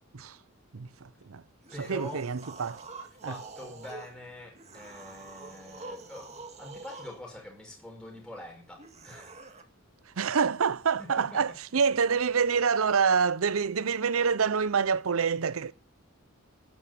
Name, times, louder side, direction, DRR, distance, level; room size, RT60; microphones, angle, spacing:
voice 1, 0.7-1.4 1.8-2.8 3.2-3.4 10.2-15.7, right 6 dB, 85° right, 0.6 m, -27 dB
sound 1, 1.6-4.1 4.5-7.2 8.8-9.6, right 3 dB, 35° right, 2.0 m, -46 dB
voice 2, 1.7-2.3 3.3-9.5 11.0-11.8, left 1 dB, 5° left, 5.4 m, -45 dB
12.0 x 9.7 x 9.2 m
head